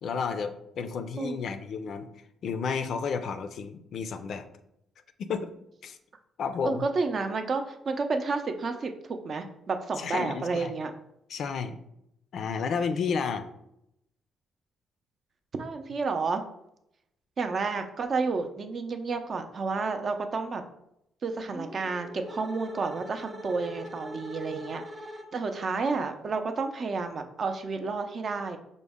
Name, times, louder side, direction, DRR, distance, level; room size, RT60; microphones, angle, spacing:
voice 1, 0.0-2.1 2.4-4.5 5.2-5.5 5.8-6.0 6.4-6.8 10.0-10.7 11.3-11.8 12.3-13.5, left 5 dB, 65° left, 9 dB, 0.4 m, -31 dB
voice 2, 6.6-10.9 15.6-16.4 17.4-20.6 21.2-24.8 25.3-28.6, right 4 dB, 45° right, 6 dB, 0.5 m, -30 dB
sound 1, 21.4-25.6, equal, 10° right, 0.7 m, -42 dB
5.1 x 2.1 x 3.5 m, 0.79 s
cardioid pair, 90°, 0 cm